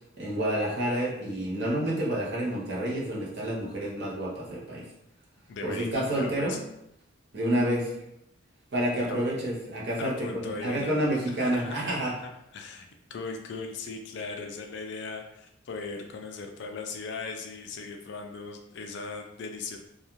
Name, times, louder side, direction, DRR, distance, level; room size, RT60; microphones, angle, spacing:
voice 1, 0.2-4.9 5.6-6.6 7.3-7.9 8.7-12.2, right 1 dB, 50° right, -5 dB, 0.7 m, -29 dB
voice 2, 5.5-6.6 9.1-9.2 10.0-11.0 11.3-19.8, left 4 dB, 55° left, 3 dB, 0.3 m, -38 dB
2.4 x 2.3 x 2.9 m, 0.81 s
head